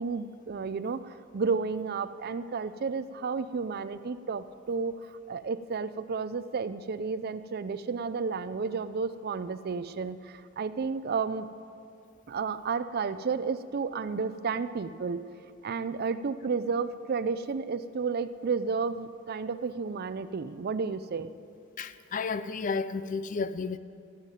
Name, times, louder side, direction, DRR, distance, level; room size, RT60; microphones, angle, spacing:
voice 1, 0.0-11.5 12.3-15.3 15.6-21.3, right 5 dB, 50° right, 0.4 m, -32 dB
voice 2, 21.8-23.8, left 4 dB, 40° left, 0.4 m, -32 dB
14.0 x 7.3 x 9.2 m
head